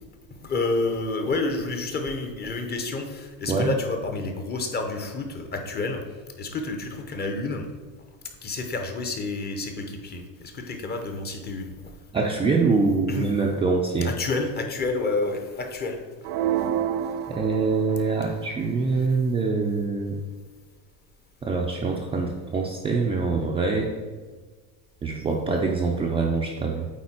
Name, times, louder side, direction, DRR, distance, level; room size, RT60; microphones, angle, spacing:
voice 1, 0.3-6.0 6.4-7.7 8.4-12.0 13.1-13.4 14.0-16.0 16.6-16.7 17.9-18.0, left 3 dB, 25° left, 5 dB, 0.8 m, -29 dB
voice 2, 12.1-14.1 17.3-20.2 21.4-23.9 25.0-26.9, right 4 dB, 15° right, -1 dB, 0.4 m, -24 dB
sound 1, 16.2-18.3, right 10 dB, 65° right, 0.5 m, -28 dB
8.5 x 4.0 x 4.4 m, 1.4 s
supercardioid pair, 140°, 41 cm